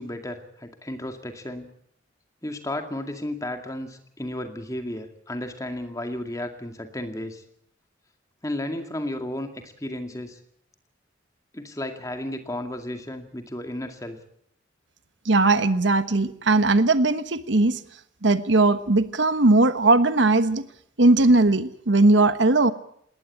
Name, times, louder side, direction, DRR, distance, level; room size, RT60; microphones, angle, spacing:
voice 1, 0.0-1.7 2.4-7.4 8.4-10.4 11.5-14.2, left 1 dB, 15° left, 6 dB, 2.2 m, -33 dB
voice 2, 15.2-17.8 18.2-20.6 21.0-22.7, right 2 dB, 70° right, 12 dB, 1.2 m, -19 dB
20.0 x 18.5 x 8.7 m, 0.69 s
head